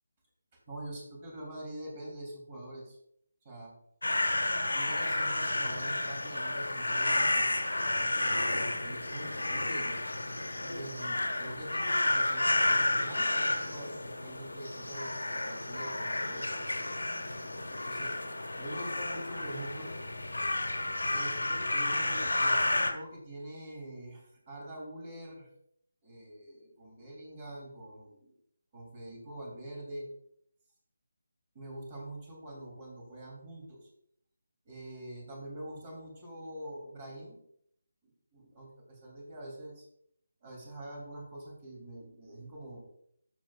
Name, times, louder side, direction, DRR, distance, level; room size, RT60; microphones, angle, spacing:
voice 1, 0.5-3.0 3.4-3.7 4.7-7.7 8.0-10.0 10.6-16.9 17.8-18.1 18.6-19.9 21.1-25.5 26.0-28.3 28.7-30.1 31.5-33.9 34.6-37.4 38.3-39.9 40.4-42.8, right 1 dB, 30° right, -2 dB, 3.2 m, -45 dB
sound 1, 4.0-22.9, left 2 dB, 85° left, 1.5 m, -31 dB
14.0 x 6.5 x 2.5 m, 0.70 s
figure-of-eight pair, 155°, 0 cm